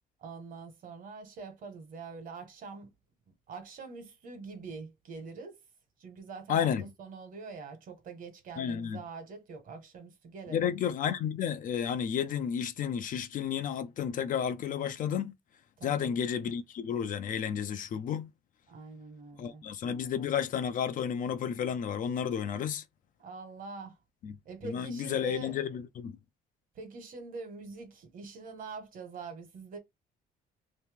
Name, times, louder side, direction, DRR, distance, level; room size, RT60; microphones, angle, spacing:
voice 1, 0.2-2.9 3.5-5.6 6.0-6.7 7.0-10.7 15.8-16.1 18.7-19.6 23.2-23.9 24.4-25.5 26.7-29.8, right 4 dB, 55° right, 1.4 m, -44 dB
voice 2, 6.5-6.8 8.6-9.0 10.5-15.3 15.8-18.3 19.4-22.8 24.2-24.3 24.6-26.1, left 8 dB, 50° left, 0.5 m, -32 dB
3.0 x 2.8 x 3.5 m
cardioid pair, 110°, 17 cm